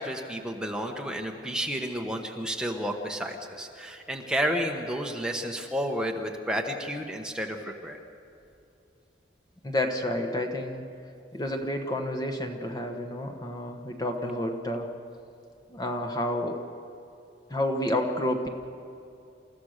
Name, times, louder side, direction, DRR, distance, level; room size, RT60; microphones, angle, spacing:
voice 1, 0.0-8.0, equal, 5° right, 2 dB, 1.2 m, -31 dB
voice 2, 9.6-10.8 11.3-14.9 15.7-16.6 17.5-18.5, left 1 dB, 20° left, 4 dB, 1.2 m, -30 dB
28.5 x 14.5 x 6.6 m, 2.6 s
head